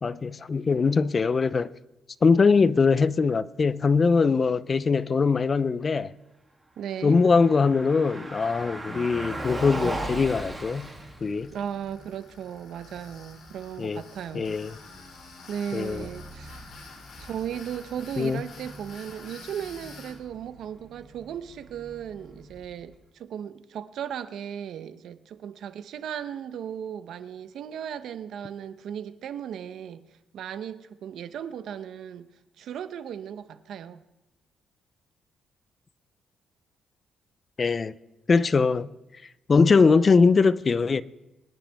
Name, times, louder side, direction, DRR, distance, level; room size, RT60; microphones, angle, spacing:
voice 1, 0.0-1.7 2.2-6.1 7.0-10.9 11.2-11.5 13.8-14.0 14.3-14.7 15.7-16.0 18.2-18.4 37.6-37.9 38.3-38.9 39.5-41.0, left 4 dB, 35° left, 0.5 m, -22 dB
Car passing by, 6.8-23.0, right 1 dB, 15° right, 2.6 m, -40 dB
voice 2, 6.8-7.2 11.5-14.6 14.9-15.0 15.5-30.1 30.3-32.3 32.6-34.0, right 9 dB, 75° right, 0.8 m, -36 dB
Tools, 10.6-20.1, left 4 dB, 65° left, 4.6 m, -49 dB
23.0 x 10.0 x 3.5 m
cardioid pair, 90°, 0 cm